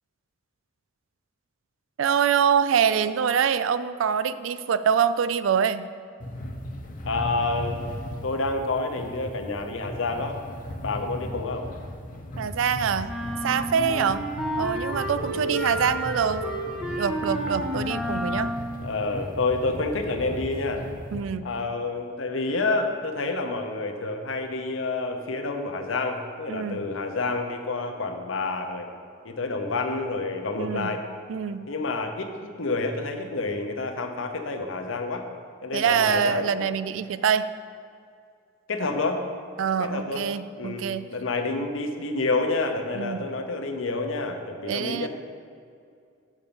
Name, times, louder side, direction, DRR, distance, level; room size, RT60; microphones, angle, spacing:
voice 1, 2.0-5.8 12.4-13.1 13.4-14.3 14.6-16.4 17.0-18.5 21.1-21.4 26.5-26.8 30.6-30.9 31.3-31.6 35.7-37.5 39.6-41.0 42.9-43.2 44.7-45.1, right 7 dB, 70° right, 14 dB, 0.4 m, -25 dB
sound 1, 6.2-21.2, left 1 dB, 45° left, 0.8 m, -37 dB
voice 2, 7.1-7.8 8.2-10.4 10.8-11.7 13.9-14.1 15.3-15.5 18.8-20.8 21.4-28.9 29.2-31.0 31.7-35.3 35.6-36.6 38.7-39.2 39.8-40.3 40.6-45.1, left 3 dB, 70° left, 5 dB, 0.9 m, -28 dB
sound 2, 13.1-18.8, equal, 5° right, 0.9 m, -31 dB
7.3 x 5.2 x 7.0 m, 2.3 s
head